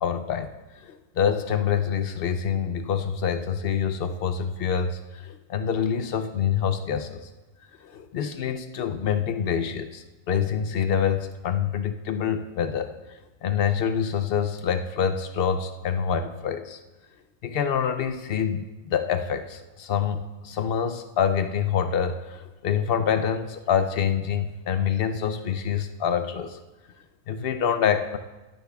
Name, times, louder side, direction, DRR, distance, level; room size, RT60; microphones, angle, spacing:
voice 1, 0.0-0.5 0.8-7.2 7.8-12.9 13.4-16.8 17.4-26.6 27.3-28.2, left 7 dB, 60° left, 9 dB, 0.6 m, -26 dB
15.5 x 10.0 x 2.3 m, 1.1 s
omnidirectional pair, 1.4 m